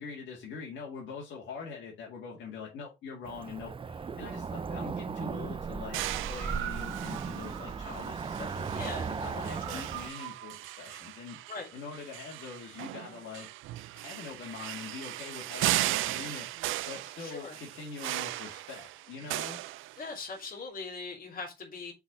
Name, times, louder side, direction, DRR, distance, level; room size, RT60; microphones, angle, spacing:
voice 1, 0.0-6.0 6.3-8.7 9.1-11.4 11.7-13.5 13.9-16.5 16.9-19.6, left 5 dB, 70° left, 2.0 m, -43 dB
Cricket / Motor vehicle (road), 3.2-10.1, right 5 dB, 25° right, 0.5 m, -37 dB
sound 1, 5.9-20.4, right 16 dB, 85° right, 0.4 m, -37 dB
voice 2, 8.7-9.1 9.7-9.8 11.5-11.7 17.2-17.6 20.0-21.9, left 4 dB, 45° left, 2.7 m, -40 dB
5.9 x 4.1 x 4.8 m
cardioid pair, 90°, 20 cm